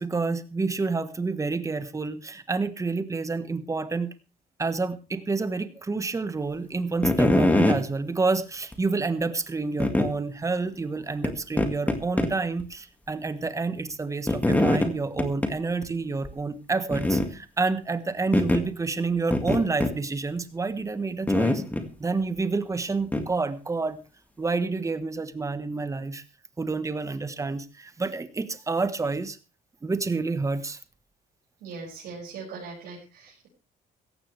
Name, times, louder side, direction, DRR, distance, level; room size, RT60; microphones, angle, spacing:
voice 1, 0.0-4.1 4.6-21.6 22.0-24.0 24.4-26.2 26.6-29.4 29.8-30.8, right 3 dB, 20° right, 12 dB, 1.4 m, -29 dB
sound 1, 7.0-7.8 8.7-8.8 9.8-10.1 11.2-11.3 11.6-12.3 12.6-12.7 14.3-14.9 15.2-15.5 15.8-15.9 16.2-16.3 16.9-17.3 18.3-18.6 19.3-19.9 21.3-21.9 23.1-23.2, left 1 dB, 10° left, 2.0 m, -22 dB
voice 2, 31.6-33.5, right 4 dB, 80° right, -6 dB, 6.3 m, -40 dB
16.5 x 15.0 x 3.4 m, 0.31 s
cardioid pair, 110°, 17 cm